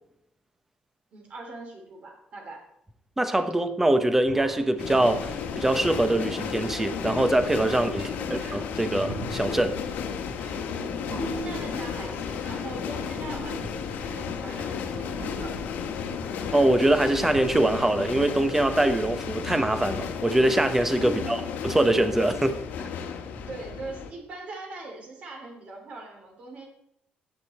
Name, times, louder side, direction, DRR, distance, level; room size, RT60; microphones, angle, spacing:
voice 1, 1.1-2.6 7.9-8.3 10.7-11.0 11.3-15.6 21.0-21.4 23.5-26.7, right 3 dB, 45° right, 3.1 m, -41 dB
voice 2, 3.2-8.0 8.3-9.8 16.5-22.6, right 1 dB, 10° right, 0.9 m, -23 dB
sound 1, 4.2-18.0, right 1 dB, 90° right, 4.3 m, -41 dB
sound 2, 4.8-24.1, left 7 dB, 90° left, 1.4 m, -33 dB
13.0 x 8.9 x 4.3 m
cardioid pair, 155°, 3 cm